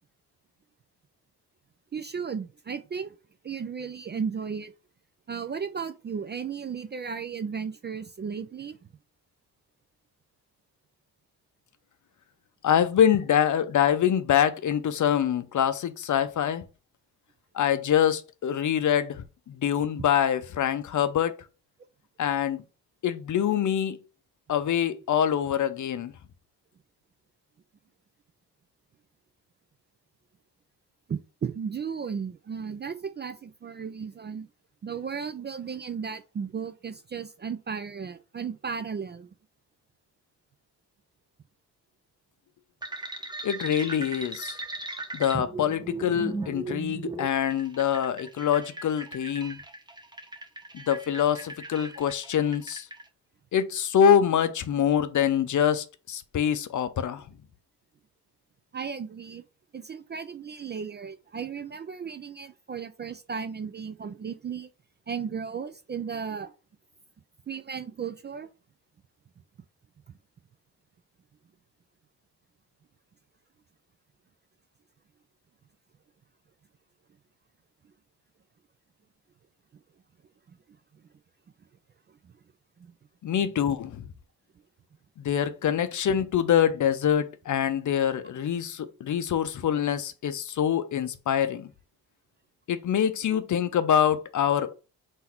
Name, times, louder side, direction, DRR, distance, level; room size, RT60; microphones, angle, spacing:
voice 1, 1.9-3.1 3.4-4.7 5.3-8.8 31.1-34.5 34.8-39.3 58.7-59.4 59.7-64.7 65.1-66.5 67.5-68.5 70.1-70.2 80.5-80.6 82.2-82.3 82.8-82.9, right 6 dB, 25° right, 0.4 m, -35 dB
voice 2, 12.6-16.6 17.5-21.4 22.2-22.6 23.0-24.0 24.5-26.1 43.4-44.6 45.1-49.6 50.7-52.9 53.5-57.2 83.2-84.0 85.2-91.7 92.7-94.7, left 9 dB, 45° left, 0.6 m, -25 dB
sound 1, 42.8-53.0, right 2 dB, 10° right, 0.9 m, -38 dB
3.8 x 2.7 x 4.4 m
supercardioid pair, 65°, 41 cm